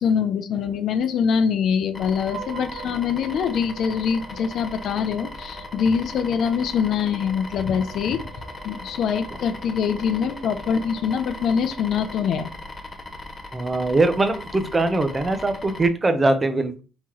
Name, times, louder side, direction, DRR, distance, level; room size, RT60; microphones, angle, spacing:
voice 1, 0.0-8.2 8.6-12.5, left 7 dB, 65° left, 10 dB, 0.5 m, -24 dB
sound 1, 1.9-15.9, left 2 dB, 25° left, 0.7 m, -39 dB
sound 2, 2.3-12.8, right 7 dB, 80° right, 1.0 m, -45 dB
voice 2, 13.5-16.8, right 2 dB, 20° right, 7 dB, 0.6 m, -21 dB
5.8 x 3.0 x 3.0 m, 0.35 s
cardioid pair, 130°, 0 cm